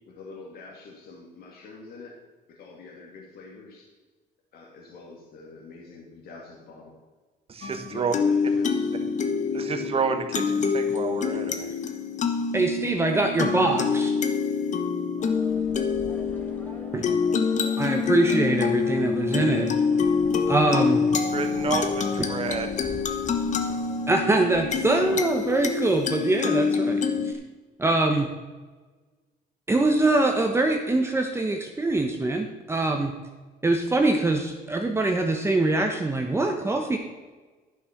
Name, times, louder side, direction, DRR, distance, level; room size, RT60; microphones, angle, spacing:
voice 1, 0.1-2.2 2.5-3.9 4.5-6.9 7.9-8.9, left 3 dB, 65° left, -1 dB, 2.3 m, -45 dB
voice 2, 7.5-8.1 9.5-11.7 21.3-22.7, right 5 dB, 35° right, 7 dB, 1.4 m, -29 dB
sound 1, 7.6-27.3, left 5 dB, 45° left, 1.2 m, -26 dB
voice 3, 12.5-14.1 16.9-17.0 17.8-19.7 20.5-21.0 24.1-27.3 27.8-28.3 29.7-33.1 33.6-37.0, right 2 dB, 15° right, 3 dB, 1.1 m, -23 dB
sound 2, 15.2-25.0, left 1 dB, 10° left, 2.1 m, -44 dB
11.0 x 6.3 x 5.9 m, 1.3 s
cardioid pair, 110°, 17 cm